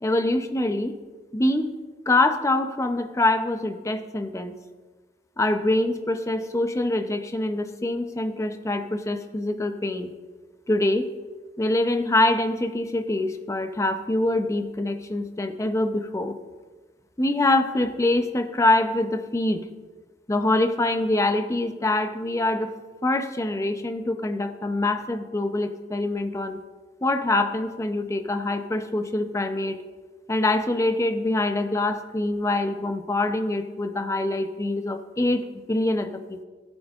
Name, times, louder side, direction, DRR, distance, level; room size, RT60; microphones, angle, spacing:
voice 1, 0.0-0.9 1.3-1.7 2.1-4.6 5.4-10.1 10.7-11.1 11.6-16.3 17.2-19.7 20.3-22.7 23.0-26.6 27.0-29.8 30.3-36.4, left 2 dB, 15° left, 9 dB, 0.5 m, -24 dB
15.5 x 9.0 x 2.4 m, 1.4 s
head